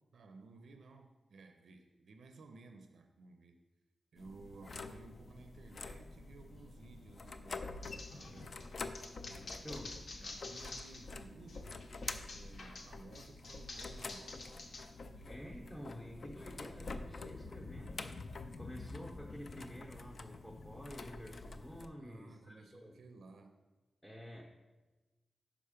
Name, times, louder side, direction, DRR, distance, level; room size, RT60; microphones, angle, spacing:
voice 1, 0.1-3.6 4.1-8.5 9.3-9.9 10.2-14.7 22.0-23.5, right 3 dB, 75° right, 6 dB, 0.5 m, -56 dB
sound 1, 4.2-21.9, left 3 dB, 45° left, 0.3 m, -47 dB
sound 2, 7.8-11.1 11.5-14.8, left 2 dB, 60° left, 0.8 m, -49 dB
voice 2, 15.1-18.1 18.6-23.0 24.0-24.4, equal, 5° left, -3 dB, 0.7 m, -49 dB
5.6 x 5.0 x 5.0 m, 1.2 s
wide cardioid pair, 165°, 0 cm